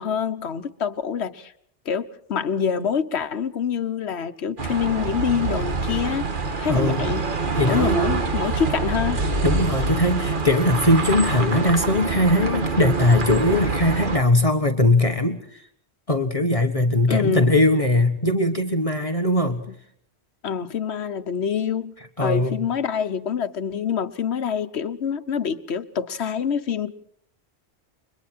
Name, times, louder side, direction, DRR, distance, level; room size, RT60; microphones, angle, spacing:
voice 1, 0.0-1.5 1.8-6.3 6.6-7.3 7.7-9.2 17.1-17.5 20.4-21.9 22.2-26.9, left 7 dB, 75° left, 1.3 m, -26 dB
sound 1, 4.6-14.2, right 4 dB, 50° right, 1.6 m, -25 dB
voice 2, 6.7-7.1 7.5-8.0 9.4-15.7 16.1-19.6 22.2-22.6, left 1 dB, 30° left, 1.4 m, -20 dB
30.0 x 23.0 x 4.4 m
omnidirectional pair, 1.1 m